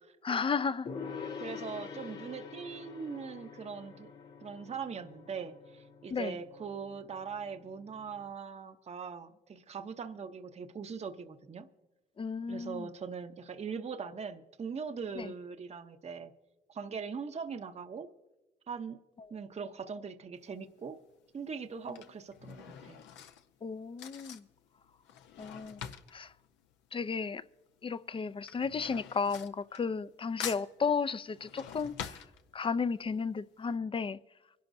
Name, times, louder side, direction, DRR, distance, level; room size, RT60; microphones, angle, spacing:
voice 1, 0.2-0.9 6.1-6.4 12.2-12.9 15.2-15.3 21.9-22.0 23.6-24.4 25.4-25.9 26.1-26.3 26.9-27.4 27.8-32.2 32.5-34.2, left 5 dB, 30° left, 0.5 m, -34 dB
Gong, 0.9-8.3, left 6 dB, 65° left, 1.8 m, -46 dB
voice 2, 1.4-4.1 4.4-11.7 12.5-16.3 16.7-18.1 18.7-19.0 19.3-21.0 21.3-23.0, right 6 dB, 35° right, 0.7 m, -41 dB
Drawer open or close / Cutlery silverware, 20.4-20.8 21.6-27.5 27.8-30.1 30.4-32.9 33.3-33.4 33.7-33.8, left 8 dB, 85° left, 0.7 m, -46 dB
24.5 x 11.5 x 2.6 m
supercardioid pair, 65°, 18 cm